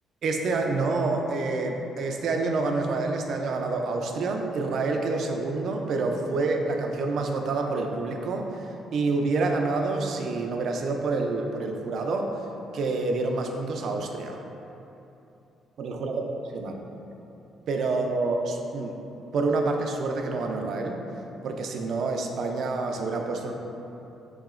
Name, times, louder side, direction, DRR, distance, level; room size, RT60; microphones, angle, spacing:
voice 1, 0.2-8.6 8.9-12.3 12.7-14.4 15.8-16.8 17.7-19.0 19.3-21.0 21.4-23.5, right 3 dB, 65° right, 3 dB, 0.3 m, -27 dB
4.0 x 2.8 x 2.4 m, 2.9 s
cardioid pair, 90°, 0 cm